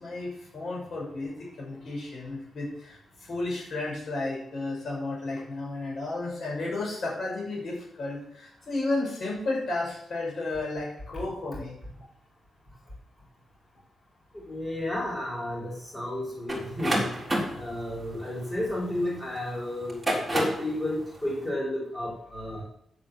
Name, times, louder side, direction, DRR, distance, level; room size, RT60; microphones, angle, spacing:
voice 1, 0.0-11.8, left 2 dB, 50° left, -3 dB, 6.6 m, -33 dB
voice 2, 14.4-17.0 17.5-20.0 20.3-22.6, left 1 dB, 15° left, -5 dB, 5.4 m, -32 dB
sound 1, 16.5-19.2 19.8-20.7, right 1 dB, 5° right, 3.6 m, -29 dB
10.0 x 8.1 x 7.6 m, 0.73 s
wide cardioid pair, 155°, 0 cm